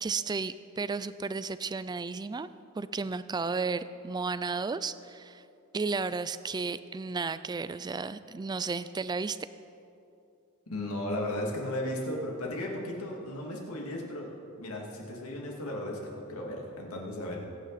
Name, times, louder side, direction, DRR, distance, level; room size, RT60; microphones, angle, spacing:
voice 1, 0.0-2.5 2.7-5.4 5.7-9.4, right 4 dB, 20° right, 14 dB, 0.3 m, -33 dB
voice 2, 10.7-14.3 14.6-17.4, left 1 dB, 75° left, -1 dB, 2.5 m, -35 dB
22.5 x 9.1 x 4.1 m, 2.6 s
head